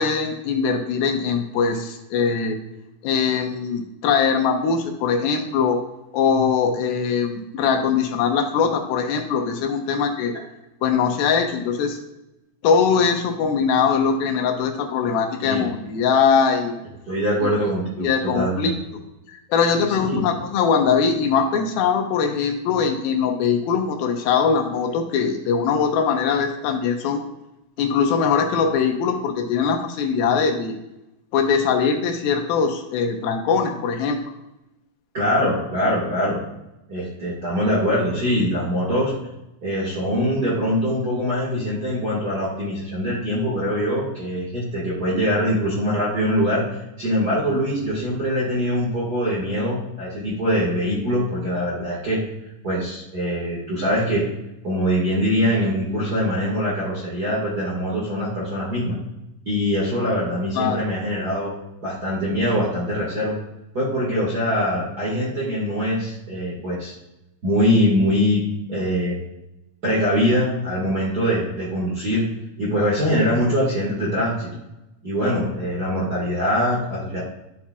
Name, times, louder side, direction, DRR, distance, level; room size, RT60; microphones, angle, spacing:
voice 1, 0.0-2.6 3.0-5.8 6.1-10.3 10.8-12.0 12.6-16.8 17.4-17.5 18.0-18.7 19.3-27.2 27.8-30.8 31.3-34.2 60.6-60.8, left 6 dB, 80° left, 5 dB, 2.5 m, -21 dB
voice 2, 17.1-18.6 19.9-20.3 35.1-36.4 36.9-39.1 39.6-46.6 47.0-52.2 52.6-54.3 54.6-58.9 59.4-61.6 61.8-63.4 63.7-66.9 67.4-69.2 69.8-72.3 72.6-74.5 75.0-77.2, equal, 40° right, -6 dB, 1.4 m, -23 dB
12.0 x 7.2 x 2.4 m, 0.93 s
omnidirectional pair, 4.5 m